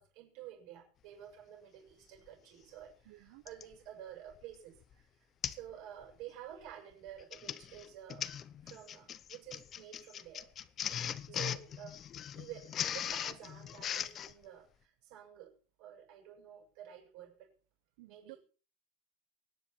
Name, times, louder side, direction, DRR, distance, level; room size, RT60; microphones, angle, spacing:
voice 1, 0.0-5.0 5.5-8.3 8.6-10.5 11.3-12.1 12.3-17.5 18.1-18.4, right 11 dB, 55° right, 7.1 m, -51 dB
Printer, 2.3-2.4 3.5-3.7 4.3-4.6 4.8-4.9 5.4-5.7 6.0-6.3 7.1-14.3, left 9 dB, 30° left, 0.7 m, -39 dB
voice 2, 3.1-3.4 11.0-11.5 18.0-18.4, right 21 dB, 75° right, 0.8 m, -55 dB
24.0 x 10.0 x 4.5 m
cardioid pair, 170°, 0 cm